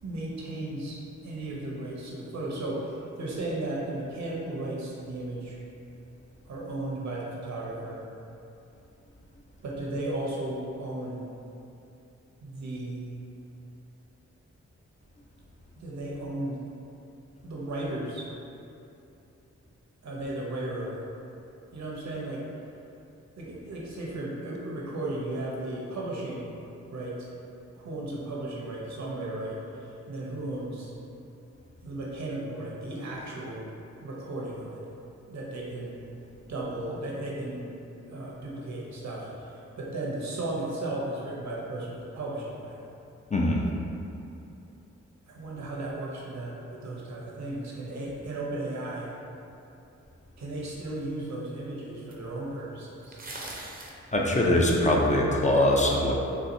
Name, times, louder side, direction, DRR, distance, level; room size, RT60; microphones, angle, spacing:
voice 1, 0.0-5.6 6.5-8.0 9.6-11.3 12.4-13.1 15.8-16.6 17.4-18.3 20.0-21.0 21.7-22.4 23.4-26.5 26.9-27.3 27.7-29.6 30.1-30.9 31.8-33.7 34.0-34.9 35.3-36.0 36.5-37.7 38.1-42.8 45.3-49.1 50.4-53.2, right 2 dB, 70° right, -4 dB, 0.7 m, -35 dB
voice 2, 43.3-43.6 54.1-56.1, left 1 dB, 25° left, -2 dB, 0.5 m, -22 dB
sound 1, 51.0-51.1 52.1-52.2 53.0-54.0 54.5-55.1, right 2 dB, 30° right, 0.6 m, -41 dB
4.0 x 2.4 x 2.6 m, 2.8 s
cardioid pair, 50°, 29 cm